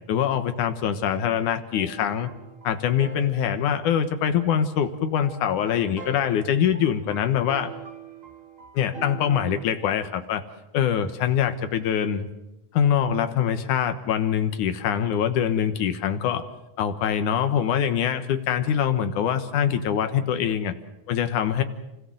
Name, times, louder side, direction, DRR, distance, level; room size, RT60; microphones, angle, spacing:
voice 1, 0.1-2.3 2.6-7.7 8.7-10.4 10.7-12.3 12.7-16.5 16.8-20.7 21.1-21.6, left 8 dB, 80° left, 8 dB, 2.7 m, -24 dB
sound 1, 1.7-10.0, right 4 dB, 25° right, 2.5 m, -44 dB
30.0 x 18.0 x 7.8 m, 0.97 s
omnidirectional pair, 3.5 m